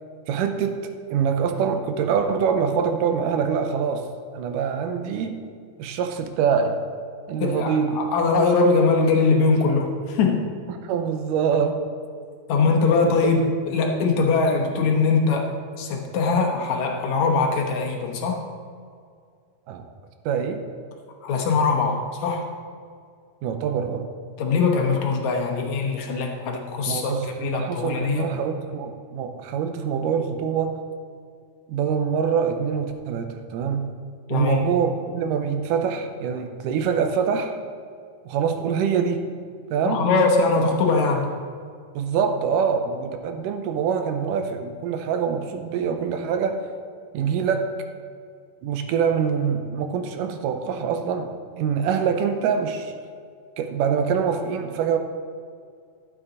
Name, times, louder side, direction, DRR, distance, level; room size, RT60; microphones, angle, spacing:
voice 1, 0.3-4.1 4.3-5.4 5.8-6.8 7.3-8.0 10.7-11.8 12.8-12.9 19.7-19.9 20.3-20.6 23.4-24.1 26.9-30.8 31.7-34.0 34.3-37.6 38.3-39.3 39.7-40.1 42.0-46.7 47.1-47.7 48.6-52.9 53.6-55.0, right 6 dB, 85° right, 7 dB, 2.2 m, -25 dB
voice 2, 7.4-10.5 12.5-13.4 13.7-18.4 21.2-22.5 24.4-28.3 34.3-34.6 39.9-41.3, left 4 dB, 65° left, 1 dB, 2.1 m, -22 dB
11.5 x 7.6 x 3.9 m, 2.2 s
omnidirectional pair, 3.8 m